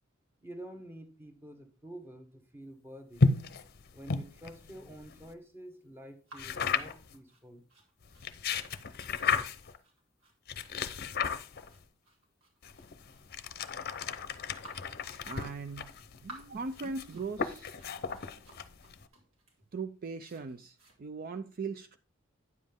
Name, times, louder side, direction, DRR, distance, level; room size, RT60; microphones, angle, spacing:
voice 1, 0.4-3.3 3.9-7.6, right 1 dB, 10° right, 1.3 m, -48 dB
sound 1, 3.2-5.3 6.4-7.1 8.0-9.8 10.5-11.8 12.6-19.0, left 4 dB, 50° left, 0.7 m, -34 dB
sound 2, 6.3-21.0, right 2 dB, 80° right, 2.8 m, -57 dB
voice 2, 15.2-15.9 16.2-17.8 18.1-18.2 19.7-22.0, right 4 dB, 45° right, 0.4 m, -39 dB
9.5 x 7.5 x 3.5 m
head